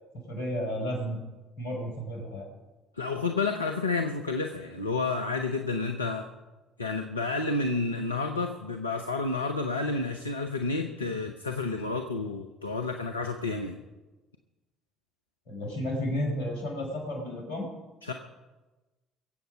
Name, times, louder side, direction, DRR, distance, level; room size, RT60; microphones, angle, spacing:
voice 1, 0.3-1.2 1.6-2.5 15.5-17.7, equal, 75° left, 1 dB, 4.9 m, -32 dB
voice 2, 2.9-6.3 6.8-13.8 18.0-18.1, left 3 dB, 90° left, 5 dB, 0.7 m, -30 dB
22.5 x 8.1 x 5.5 m, 1.2 s
figure-of-eight pair, 55°, 0 cm